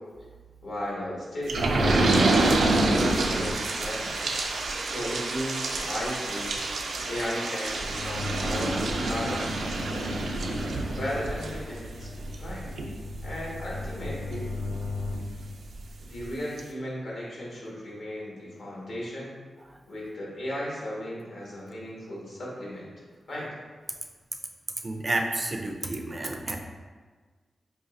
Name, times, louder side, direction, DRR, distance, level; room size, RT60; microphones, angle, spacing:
voice 1, 0.6-4.3 4.8-6.5 7.1-9.4 10.9-12.6 13.2-14.5 16.0-19.3 19.9-22.9 23.3-23.5, equal, 70° left, -6 dB, 1.4 m, -35 dB
sound 1, 1.5-15.8 16.2-16.3 16.6-16.7, right 2 dB, 85° right, 0.4 m, -28 dB
voice 2, 24.8-26.6, right 2 dB, 25° right, 2 dB, 0.4 m, -31 dB
5.2 x 2.8 x 2.5 m, 1.4 s
wide cardioid pair, 120°, 0 cm